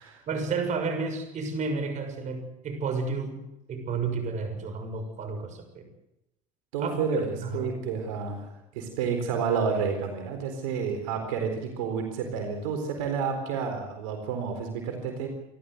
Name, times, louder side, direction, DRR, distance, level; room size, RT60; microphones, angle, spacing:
voice 1, 0.3-3.4 3.7-5.9 6.8-7.0 7.4-7.7, right 4 dB, 45° right, 7 dB, 6.6 m, -31 dB
voice 2, 6.7-15.3, right 6 dB, 85° right, 5 dB, 4.1 m, -30 dB
29.0 x 12.5 x 8.1 m, 0.85 s
supercardioid pair, 100°, 17 cm